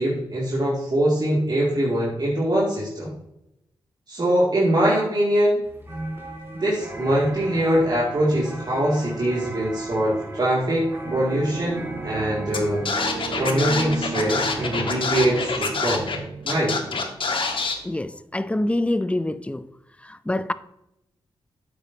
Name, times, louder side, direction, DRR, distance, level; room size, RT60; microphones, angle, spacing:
voice 1, 0.0-3.1 4.1-5.6 6.6-12.8 13.4-16.1 16.4-16.8, right 1 dB, 45° right, 2.5 m, -23 dB
sound 1, 5.6-15.6, right 1 dB, 25° right, 2.3 m, -36 dB
sound 2, 11.0-18.2, right 5 dB, 65° right, 1.1 m, -37 dB
Scratching (performance technique), 12.5-12.6 12.9-16.2 16.5-17.7, left 4 dB, 60° left, 1.6 m, -26 dB
voice 2, 17.8-19.7 20.0-20.5, left 1 dB, 10° left, 0.5 m, -26 dB
8.9 x 8.3 x 2.8 m
cardioid pair, 65°, 10 cm